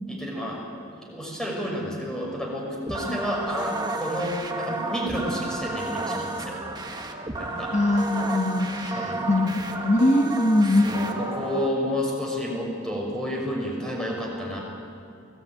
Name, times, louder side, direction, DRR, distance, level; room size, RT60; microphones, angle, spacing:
voice 1, 0.1-0.6 0.9-6.6 7.4-7.8 8.9-9.3 10.6-14.6, equal, 5° left, -2 dB, 5.9 m, -30 dB
sound 1, 2.9-11.7, right 2 dB, 20° right, 1.7 m, -32 dB
voice 2, 7.7-11.0, left 1 dB, 35° left, 1 dB, 1.6 m, -22 dB
24.5 x 19.0 x 9.4 m, 2.5 s
head